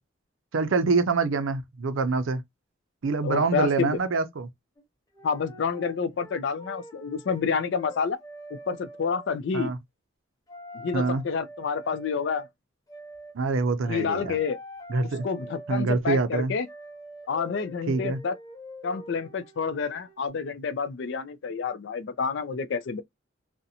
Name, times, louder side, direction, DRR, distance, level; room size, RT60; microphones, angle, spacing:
voice 1, 0.5-2.4 3.0-4.5 9.5-9.8 10.9-11.2 13.3-14.4 14.9-15.3 15.7-16.5 17.9-18.2, right 4 dB, 80° right, 0.5 m, -25 dB
voice 2, 3.2-4.0 5.2-8.2 8.5-9.7 10.7-12.5 13.9-14.6 15.2-16.7 17.3-18.4 18.8-23.0, left 5 dB, 60° left, 0.4 m, -29 dB
sound 1, 4.8-4.9 5.1-7.5 7.7-9.3 10.5-12.5 12.9-13.3 13.8-15.9 16.6-20.3, equal, 20° left, 0.6 m, -45 dB
2.5 x 2.1 x 2.6 m
head